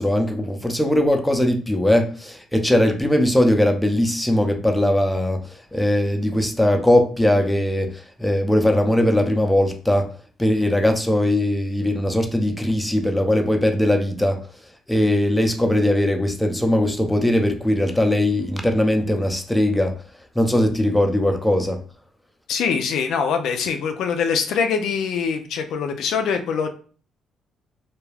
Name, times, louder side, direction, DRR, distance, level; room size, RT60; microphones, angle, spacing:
voice 1, 0.0-5.4 5.7-10.1 10.4-14.4 14.9-19.9 20.4-21.8, left 1 dB, 5° left, 4 dB, 0.5 m, -20 dB
voice 2, 22.5-26.7, left 6 dB, 75° left, 6 dB, 0.3 m, -23 dB
2.3 x 2.2 x 3.2 m, 0.41 s
cardioid pair, 75°, 0 cm